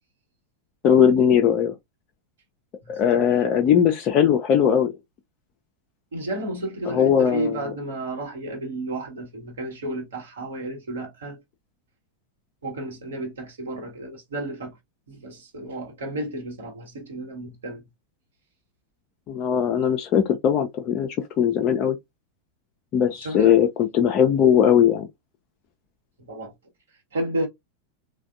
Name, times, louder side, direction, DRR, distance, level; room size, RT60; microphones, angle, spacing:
voice 1, 0.8-1.7 2.9-4.9 6.9-7.5 19.3-21.1 21.4-22.0 22.9-25.1, left 8 dB, 35° left, 0.4 m, -19 dB
voice 2, 2.8-3.4 6.1-11.4 12.6-14.8 15.1-17.8 23.2-23.6 26.3-26.5 27.1-27.5, right 1 dB, 65° right, 1.0 m, -32 dB
3.3 x 2.2 x 2.4 m
figure-of-eight pair, 90°, 0 cm